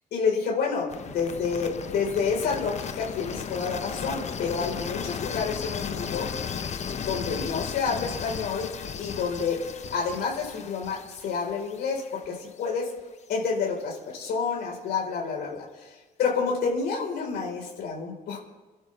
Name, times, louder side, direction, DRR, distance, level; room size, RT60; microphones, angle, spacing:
voice 1, 0.1-6.3 7.0-8.7 9.0-9.6 9.9-12.9 13.3-15.9 16.2-18.4, left 5 dB, 70° left, 0 dB, 4.5 m, -29 dB
sound 1, 0.9-12.8, left 7 dB, 45° left, 1.0 m, -35 dB
26.5 x 12.5 x 3.5 m, 1.2 s
cardioid pair, 110°, 17 cm